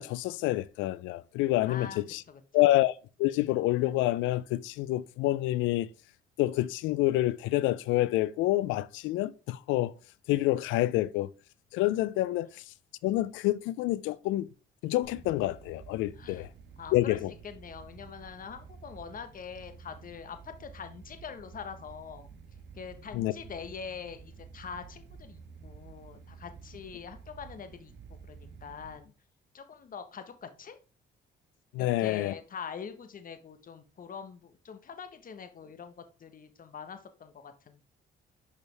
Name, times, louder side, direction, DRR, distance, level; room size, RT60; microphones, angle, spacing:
voice 1, 0.0-2.2 2.5-2.9 3.2-5.9 6.4-9.9 10.3-11.3 11.7-12.7 13.0-14.5 14.8-16.5 16.9-17.3 23.1-23.3 31.7-32.3, left 16 dB, 90° left, 0.4 m, -28 dB
voice 2, 1.7-2.0 2.3-2.4 16.2-16.5 16.8-17.2 17.4-22.4 22.8-27.9 28.3-29.1 29.5-30.8 31.8-37.8, left 6 dB, 45° left, 1.0 m, -44 dB
sound 1, 15.0-29.0, right 5 dB, 70° right, 1.3 m, -51 dB
6.4 x 5.1 x 3.3 m
cardioid pair, 80°, 19 cm